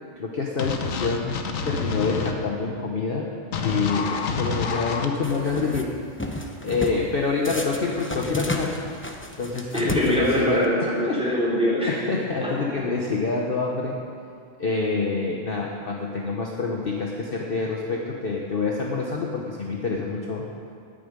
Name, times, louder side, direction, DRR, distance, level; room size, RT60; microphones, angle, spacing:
voice 1, 0.2-3.3 3.6-5.9 6.6-8.8 9.4-10.6 11.1-11.2 11.9-14.0 14.6-20.5, left 4 dB, 45° left, -1 dB, 1.1 m, -27 dB
sound 1, 0.6-2.3 3.5-5.1, left 5 dB, 85° left, 1.3 m, -28 dB
sound 2, 5.2-5.8 6.2-7.0 7.4-10.6, left 2 dB, 10° left, 0.6 m, -32 dB
voice 2, 9.7-11.9 12.4-12.5, equal, 5° right, -8 dB, 3.9 m, -23 dB
10.0 x 8.7 x 9.5 m, 2.3 s
omnidirectional pair, 1.3 m